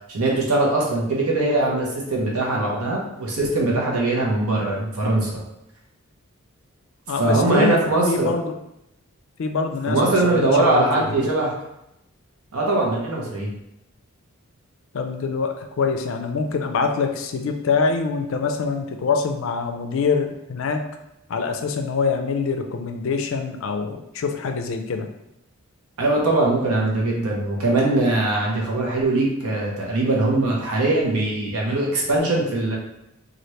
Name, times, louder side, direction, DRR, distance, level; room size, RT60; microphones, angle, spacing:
voice 1, 0.1-5.3 7.2-8.3 9.9-11.5 12.5-13.5 26.0-32.8, right 2 dB, 85° right, -2 dB, 0.8 m, -21 dB
voice 2, 7.1-7.8 8.1-8.6 9.4-11.1 14.9-20.8 21.3-25.1, left 4 dB, 65° left, 5 dB, 0.4 m, -24 dB
2.8 x 2.5 x 3.2 m, 0.84 s
head